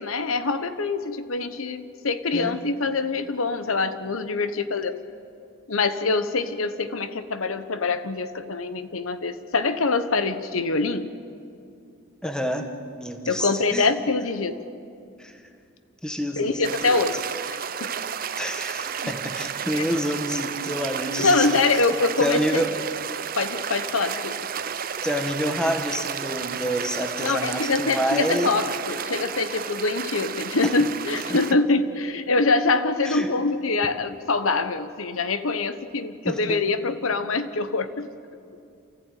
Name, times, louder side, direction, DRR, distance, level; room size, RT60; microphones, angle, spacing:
voice 1, 0.0-5.0 5.7-11.1 13.3-14.6 16.4-17.1 17.8-17.9 19.0-19.1 19.7-19.8 21.2-22.6 23.4-24.5 27.2-38.1, left 3 dB, 85° left, 11 dB, 1.1 m, -24 dB
voice 2, 12.2-12.7 13.0-13.9 15.2-15.4 16.0-17.0 18.4-21.8 22.2-22.7 25.0-28.6 30.6-30.7 31.3-31.4 33.0-33.3 36.2-36.6, equal, 5° left, 5 dB, 1.3 m, -28 dB
sound 1, 16.6-31.5, right 7 dB, 45° right, 0.6 m, -32 dB
28.5 x 15.0 x 9.2 m, 2.5 s
head